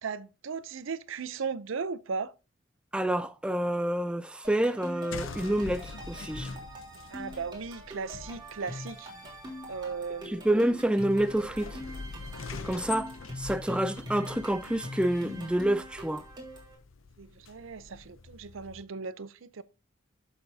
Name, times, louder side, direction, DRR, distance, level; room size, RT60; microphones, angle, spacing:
voice 1, 0.0-2.3 7.1-9.1 9.7-10.5 17.2-19.6, right 5 dB, 75° right, 0.6 m, -37 dB
voice 2, 2.9-6.5 10.2-11.8 12.6-16.2, right 1 dB, 5° right, 0.3 m, -28 dB
sound 1, 4.4-16.7, left 1 dB, 25° right, 3.3 m, -43 dB
sound 2, 5.1-18.8, left 5 dB, 75° left, 0.6 m, -45 dB
11.5 x 6.8 x 2.7 m
head